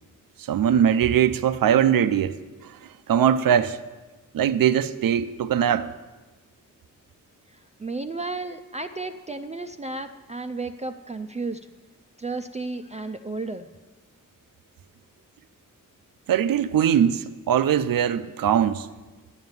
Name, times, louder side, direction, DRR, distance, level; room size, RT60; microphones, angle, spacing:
voice 1, 0.5-2.4 2.6-2.7 3.1-3.8 4.3-5.9 16.3-18.9, right 9 dB, 85° right, 0.6 m, -21 dB
voice 2, 7.5-11.6 12.2-13.7, right 3 dB, 20° right, 0.4 m, -33 dB
10.5 x 7.3 x 9.4 m
wide cardioid pair, 160°, 33 cm